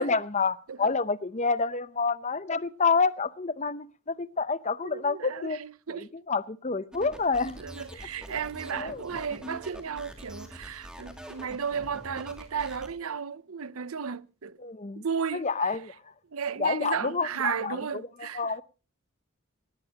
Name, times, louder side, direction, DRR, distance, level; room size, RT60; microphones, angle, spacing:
voice 1, 0.0-5.6 6.0-7.6 8.8-9.0 14.6-15.0 15.3-15.8 16.6-17.3 17.6-17.8 18.4-18.6, left 4 dB, 30° left, 0.7 m, -28 dB
voice 2, 4.8-6.1 7.6-14.6 15.0-15.8 16.3-18.6, right 6 dB, 75° right, 0.7 m, -34 dB
sound 1, 6.9-12.9, right 1 dB, 5° right, 2.5 m, -45 dB
18.5 x 17.5 x 2.9 m
head